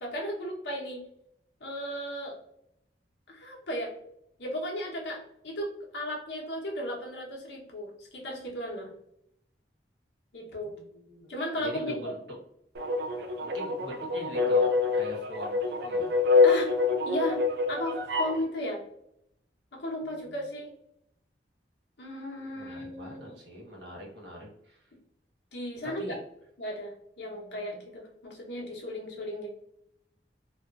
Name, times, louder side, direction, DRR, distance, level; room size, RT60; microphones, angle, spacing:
voice 1, 0.0-1.0 1.6-2.3 3.3-3.9 4.4-8.9 10.3-10.7 11.3-12.1 16.4-16.7 17.0-17.4 17.7-18.8 19.7-20.7 22.0-23.4 25.5-26.2 26.6-29.5, equal, 75° left, -1 dB, 0.9 m, -35 dB
voice 2, 10.6-11.3 11.6-12.2 13.4-16.1 22.5-24.9 25.8-26.2, equal, 85° right, -3 dB, 1.0 m, -42 dB
sound 1, 12.7-18.4, left 4 dB, 65° right, 0.4 m, -26 dB
2.7 x 2.3 x 2.3 m, 0.76 s
head